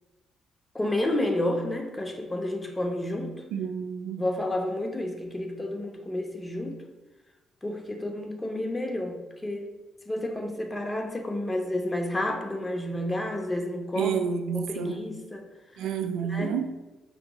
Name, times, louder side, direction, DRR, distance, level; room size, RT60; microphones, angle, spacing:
voice 1, 0.7-3.4 4.2-6.8 7.6-9.7 10.1-14.2 14.5-15.5 15.7-15.9 16.3-16.6, left 1 dB, 15° left, 4 dB, 0.6 m, -30 dB
voice 2, 3.5-4.2 13.9-15.0 15.8-16.7, right 7 dB, 85° right, 7 dB, 0.3 m, -29 dB
5.2 x 2.9 x 2.2 m, 1.1 s
cardioid pair, 90°, 0 cm